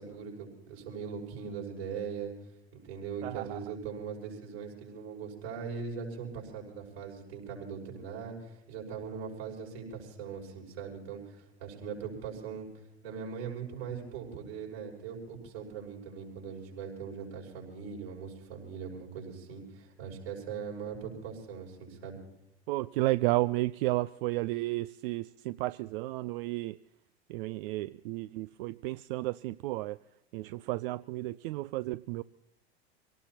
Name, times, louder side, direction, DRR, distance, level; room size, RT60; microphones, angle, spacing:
voice 1, 0.0-2.3 2.7-12.7 13.0-22.2, right 6 dB, 70° right, -2 dB, 6.0 m, -40 dB
voice 2, 3.2-3.6 22.7-26.7 27.3-30.0 30.3-32.2, right 19 dB, 55° right, 15 dB, 0.5 m, -32 dB
26.5 x 18.0 x 2.9 m, 0.88 s
figure-of-eight pair, 80°, 33 cm